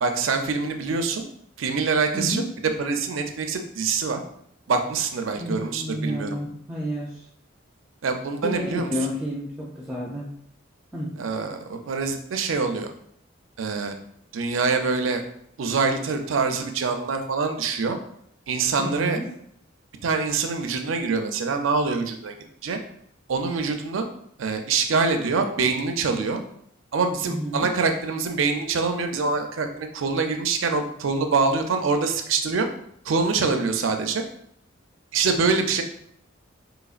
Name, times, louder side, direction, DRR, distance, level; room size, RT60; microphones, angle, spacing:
voice 1, 0.0-1.2 1.6-4.2 4.7-6.4 8.0-8.9 11.2-12.9 13.6-13.9 14.3-15.2 15.6-18.0 18.5-19.2 20.0-22.3 22.6-22.8 23.3-24.0 24.4-26.4 26.9-32.7 33.0-34.2 35.1-35.8, right 4 dB, 80° right, 5 dB, 0.5 m, -25 dB
voice 2, 5.4-7.1 8.4-10.3 10.9-11.1 18.8-19.2 27.2-27.7, equal, 5° right, -5 dB, 0.4 m, -30 dB
3.9 x 2.9 x 2.4 m, 0.71 s
head